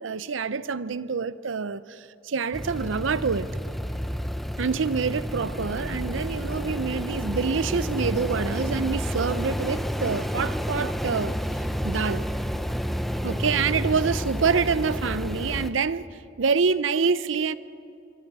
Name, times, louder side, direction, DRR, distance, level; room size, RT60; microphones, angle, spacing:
voice 1, 0.0-3.5 4.6-11.4 11.8-12.2 13.2-16.1 16.4-17.6, right 5 dB, 85° right, 0.6 m, -26 dB
sound 1, 2.5-15.7, equal, ahead, 0.7 m, -30 dB
26.5 x 22.0 x 4.8 m
head